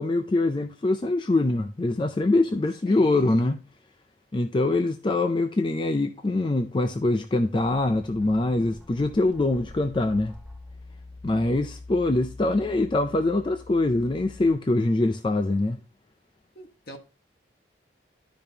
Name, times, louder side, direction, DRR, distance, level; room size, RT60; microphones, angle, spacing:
voice 1, 0.0-3.6 4.3-10.3 11.2-15.8, left 2 dB, 25° left, 0.4 m, -24 dB
voice 2, 2.9-3.4 16.5-17.0, equal, 55° left, 1.4 m, -42 dB
sound 1, 7.6-14.5, left 2 dB, ahead, 0.7 m, -45 dB
12.0 x 5.2 x 2.8 m
head